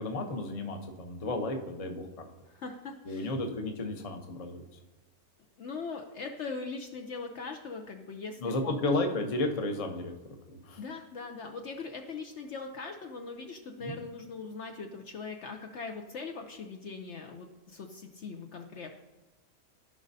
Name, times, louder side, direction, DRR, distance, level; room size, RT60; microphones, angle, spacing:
voice 1, 0.0-2.1 3.1-4.6 8.4-10.1 10.5-10.8 13.8-14.0, left 2 dB, 30° left, 4 dB, 0.8 m, -32 dB
voice 2, 2.5-3.3 5.6-8.8 10.8-18.9, left 4 dB, 60° left, 3 dB, 0.9 m, -41 dB
14.5 x 5.2 x 2.7 m, 1.2 s
omnidirectional pair, 1.5 m